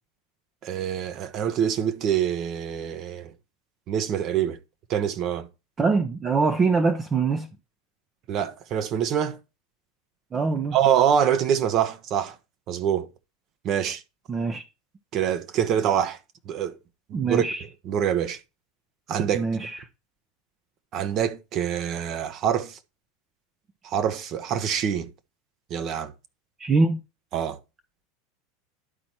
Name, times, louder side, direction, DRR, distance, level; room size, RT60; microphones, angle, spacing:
voice 1, 0.6-3.3 3.9-4.6 4.9-5.5 8.3-9.4 10.7-12.3 12.7-13.1 13.6-14.0 15.1-16.2 16.4-16.8 17.1-18.4 19.1-19.5 20.9-22.8 23.8-25.1 25.7-26.1 27.3-27.6, right 9 dB, 45° right, 1.0 m, -25 dB
voice 2, 5.8-7.5 10.3-10.8 14.3-14.6 17.1-17.6 19.3-19.8 26.6-27.0, right 4 dB, 25° right, 0.7 m, -23 dB
11.0 x 4.2 x 4.4 m
hypercardioid pair, 100°, 0 cm